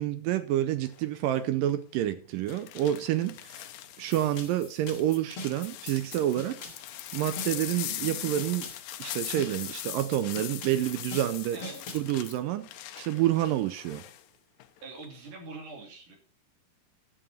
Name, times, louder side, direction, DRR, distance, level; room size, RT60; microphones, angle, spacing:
voice 1, 0.0-3.7 4.0-6.6 7.1-8.7 9.0-11.6 11.9-12.7 13.0-14.0, right 12 dB, 85° right, 1.9 m, -28 dB
sound 1, 0.8-1.2 2.5-4.4 5.0-14.2 14.6-15.1, left 14 dB, 85° left, 2.8 m, -41 dB
sound 2, 4.1-12.1, left 3 dB, 40° left, 2.3 m, -44 dB
voice 2, 14.8-16.2, right 3 dB, 55° right, 4.2 m, -43 dB
13.0 x 7.1 x 4.3 m
omnidirectional pair, 4.7 m